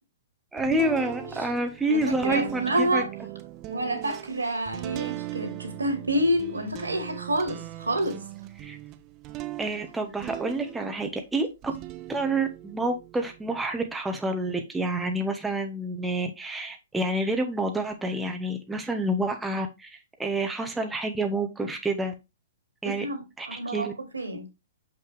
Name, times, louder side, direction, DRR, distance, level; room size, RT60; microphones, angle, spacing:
voice 1, 0.5-3.0 8.6-8.8 9.6-11.7 12.1-22.1 22.8-23.0 23.4-23.9, right 1 dB, 5° right, 1.1 m, -28 dB
sound 1, 0.6-11.2 11.6-13.9, right 16 dB, 30° right, 1.0 m, -40 dB
voice 2, 1.9-3.1 3.7-8.2 22.8-23.9 24.1-24.5, right 1 dB, 80° right, 2.4 m, -28 dB
6.9 x 5.6 x 3.4 m
figure-of-eight pair, 115°, 0 cm